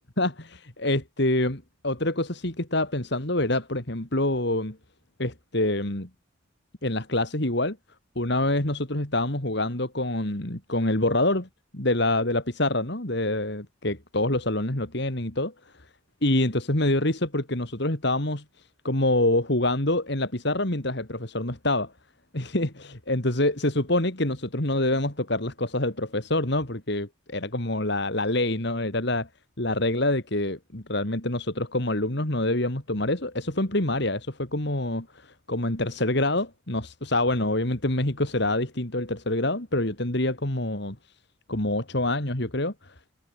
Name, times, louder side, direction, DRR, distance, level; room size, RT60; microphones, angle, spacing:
voice 1, 0.2-4.8 5.2-6.1 6.8-7.8 8.1-11.5 11.7-15.5 16.2-18.4 18.8-21.9 22.3-29.3 29.6-41.0 41.5-42.9, left 1 dB, 55° left, 3.0 m, -26 dB
head